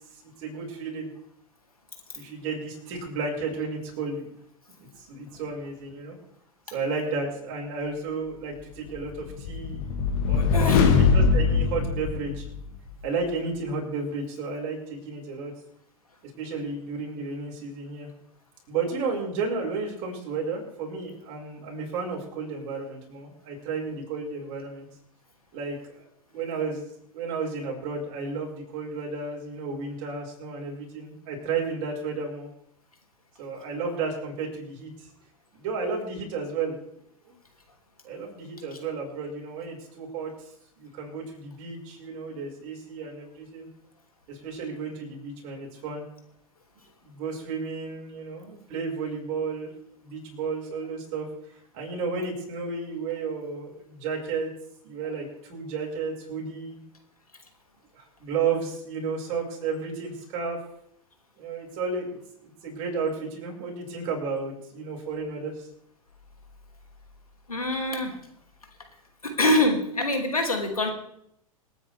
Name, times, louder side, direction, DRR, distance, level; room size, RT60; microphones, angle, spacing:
voice 1, 0.4-1.1 2.1-4.2 5.0-6.2 6.7-9.8 10.3-12.5 13.0-15.5 16.2-18.1 18.7-24.9 25.5-26.0 26.3-26.9 27.1-32.5 33.4-35.1 35.5-36.8 38.0-40.3 40.8-43.7 44.3-46.0 47.0-49.7 50.0-51.3 51.7-54.5 54.8-56.8 57.9-60.6 61.4-65.7, right 4 dB, 45° right, -1 dB, 5.9 m, -32 dB
sound 1, 9.0-12.8, left 5 dB, 45° left, 1.8 m, -22 dB
voice 2, 10.5-11.0 67.5-68.2 69.2-70.9, left 1 dB, 80° left, 4 dB, 2.9 m, -24 dB
27.0 x 9.5 x 3.6 m, 0.73 s
figure-of-eight pair, 95°, 18 cm